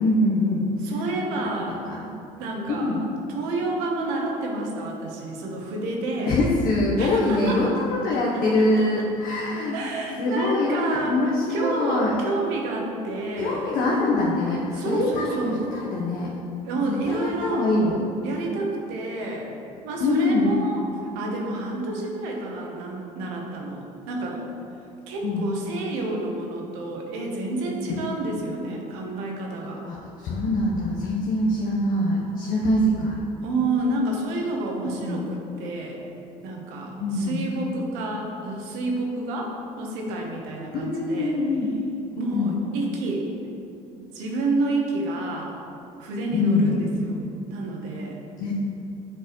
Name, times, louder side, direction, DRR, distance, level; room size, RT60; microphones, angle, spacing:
voice 1, 0.0-0.7 1.9-2.1 2.7-3.0 6.3-9.8 10.2-12.1 13.4-16.3 16.9-18.0 20.0-20.5 25.2-25.5 29.8-33.2 34.9-35.2 37.0-37.5 40.7-41.7 42.3-42.5 46.3-46.7 48.4-48.5, left 2 dB, 60° left, -4 dB, 1.0 m, -24 dB
voice 2, 0.8-1.8 2.4-3.0 3.3-6.4 7.0-7.7 8.8-8.9 9.7-11.2 11.5-13.7 14.7-15.7 16.6-17.7 18.2-19.5 19.8-24.4 25.1-29.8 33.4-36.0 36.4-41.4 42.2-43.3 44.0-45.6 46.0-48.2, right 2 dB, 80° right, 0 dB, 1.1 m, -29 dB
7.9 x 4.5 x 3.1 m, 2.7 s
hypercardioid pair, 70°, 17 cm